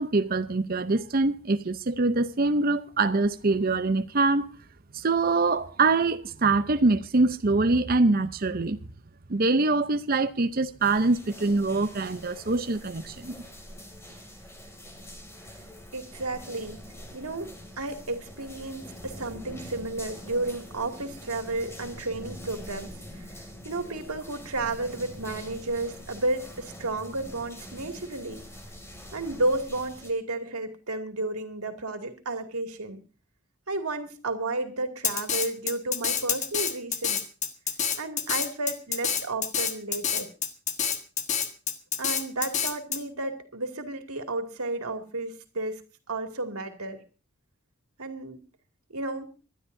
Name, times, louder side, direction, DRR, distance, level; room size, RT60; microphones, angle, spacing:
voice 1, 0.0-4.5 4.9-8.8 9.3-13.4, right 3 dB, 40° right, 0.7 m, -24 dB
sound 1, 10.8-30.1, equal, 10° left, 2.6 m, -44 dB
voice 2, 15.9-16.8 17.1-17.5 17.8-23.4 23.6-28.4 29.1-33.0 33.7-37.2 38.0-40.3 42.0-45.8 46.1-47.0 48.0-48.4 48.9-49.3, right 2 dB, 85° right, 2.4 m, -32 dB
Drum kit, 35.0-43.0, left 7 dB, 30° left, 1.4 m, -27 dB
26.0 x 12.5 x 2.7 m
head